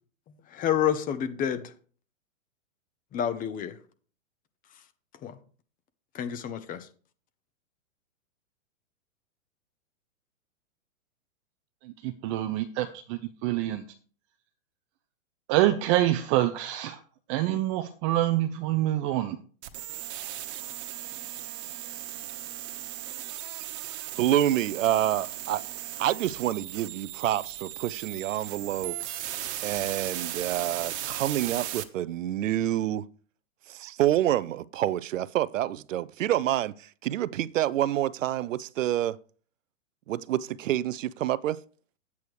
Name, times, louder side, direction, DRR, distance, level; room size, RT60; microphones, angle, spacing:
voice 1, 0.5-1.7 3.1-3.8 5.2-5.4 6.1-6.9, left 9 dB, 20° left, 0.8 m, -29 dB
voice 2, 11.8-13.9 15.5-17.0 17.3-19.4, right 14 dB, 25° right, 0.4 m, -26 dB
sound 1, 19.6-31.8, right 12 dB, 55° right, 1.3 m, -37 dB
voice 3, 24.2-25.6 26.0-29.0 29.6-33.1 33.7-39.2 40.1-41.6, right 12 dB, 75° right, 0.6 m, -27 dB
10.5 x 8.4 x 3.2 m
hypercardioid pair, 125°, 39 cm